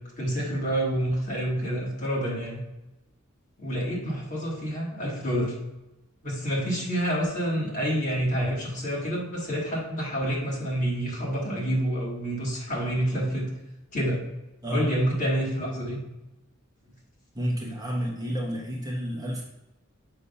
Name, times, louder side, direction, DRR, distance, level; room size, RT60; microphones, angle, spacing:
voice 1, 0.2-2.6 3.6-5.6 6.2-13.5 13.9-14.2 14.7-16.0, equal, 40° left, -5 dB, 2.1 m, -28 dB
voice 2, 17.3-19.4, equal, 20° right, -2 dB, 1.0 m, -30 dB
6.8 x 2.7 x 5.4 m, 0.95 s
head